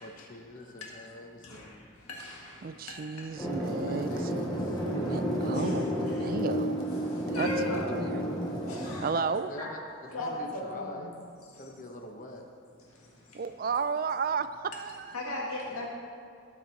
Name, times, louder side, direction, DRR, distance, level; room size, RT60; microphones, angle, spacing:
voice 1, 0.0-1.9 3.7-4.8 9.3-9.8 10.2-11.1 11.6-12.4, left 1 dB, 40° left, 2 dB, 0.9 m, -45 dB
voice 2, 2.6-6.8 7.3-7.5 7.9-8.2 9.0-9.5 13.3-15.2, right 5 dB, 40° right, 12 dB, 0.3 m, -33 dB
sound 1, 3.4-9.0, equal, 20° left, 1.5 m, -31 dB
voice 3, 7.3-8.0 8.7-9.2 9.6-9.7 10.1-10.9 15.1-15.9, left 2 dB, 90° left, -3 dB, 1.8 m, -35 dB
17.5 x 6.1 x 4.1 m, 2.3 s
head